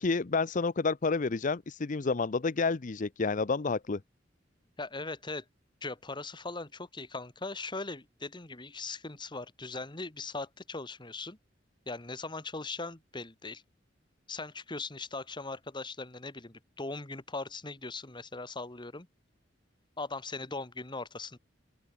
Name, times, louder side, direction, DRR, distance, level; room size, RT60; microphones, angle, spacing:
voice 1, 0.0-4.0, left 4 dB, 45° left, 0.6 m, -29 dB
voice 2, 4.8-5.5 5.8-11.4 11.9-13.6 14.3-19.1 20.0-21.4, left 3 dB, 25° left, 1.8 m, -39 dB
open air
head